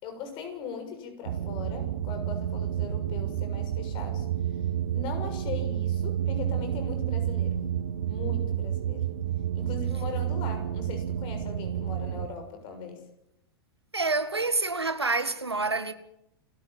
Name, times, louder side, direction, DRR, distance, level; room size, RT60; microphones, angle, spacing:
voice 1, 0.0-4.3 4.9-7.6 8.0-9.1 9.5-13.1, left 5 dB, 40° left, 6.8 m, -39 dB
sound 1, 1.2-12.3, right 10 dB, 60° right, 1.4 m, -30 dB
voice 2, 13.9-15.9, right 3 dB, 90° right, 1.9 m, -27 dB
29.5 x 12.5 x 8.9 m
figure-of-eight pair, 100°, 13 cm